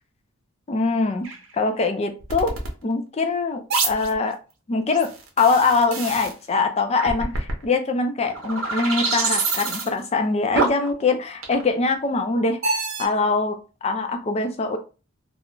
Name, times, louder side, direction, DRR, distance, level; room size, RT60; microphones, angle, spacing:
voice 1, 0.7-1.3 1.5-2.6 2.8-4.4 4.7-5.1 5.4-14.8, left 3 dB, 30° left, 6 dB, 0.3 m, -23 dB
sound 1, 1.2-1.4 2.2-2.7 3.7-4.1 4.9-6.3 7.0-7.6 8.2-9.9 10.6-10.9 11.4-11.8 12.6-13.1, right 3 dB, 65° right, 0.7 m, -26 dB
2.3 x 2.1 x 3.6 m, 0.33 s
head